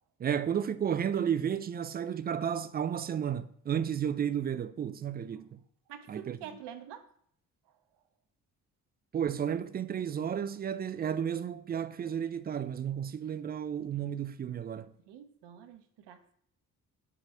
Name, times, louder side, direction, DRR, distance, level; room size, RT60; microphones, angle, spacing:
voice 1, 0.2-5.6 6.1-6.4 9.1-14.9, right 8 dB, 25° right, 0.3 m, -32 dB
voice 2, 5.9-7.1 15.1-16.2, right 9 dB, 60° right, 0.8 m, -46 dB
4.8 x 3.8 x 5.6 m
hypercardioid pair, 40°, 48 cm